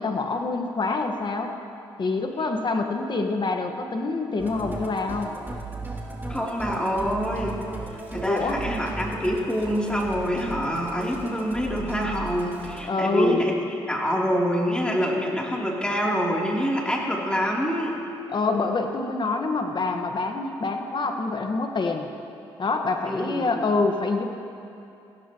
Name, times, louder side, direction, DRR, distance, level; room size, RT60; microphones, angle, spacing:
voice 1, 0.0-1.6 2.0-5.3 8.2-8.6 12.9-13.4 18.3-22.1 22.6-24.2, left 3 dB, 45° left, 4 dB, 1.6 m, -26 dB
Musical instrument, 4.4-12.9, right 2 dB, 20° right, 2.7 m, -36 dB
voice 2, 6.3-7.6 8.1-13.5 13.9-18.0 23.1-23.7, equal, 10° left, -3 dB, 3.4 m, -26 dB
22.0 x 16.0 x 3.1 m, 2.6 s
supercardioid pair, 60°, 11 cm